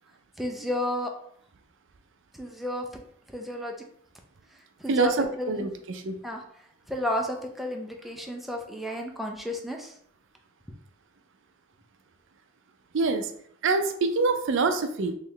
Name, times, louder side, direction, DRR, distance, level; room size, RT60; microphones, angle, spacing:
voice 1, 0.4-1.1 2.3-2.9 3.3-3.8 4.5-5.7 6.2-6.4 6.9-9.9, left 1 dB, ahead, 1 dB, 0.4 m, -32 dB
voice 2, 4.9-6.2 12.9-13.3 13.6-15.1, right 3 dB, 65° right, 7 dB, 0.5 m, -25 dB
3.2 x 3.1 x 3.9 m, 0.66 s
head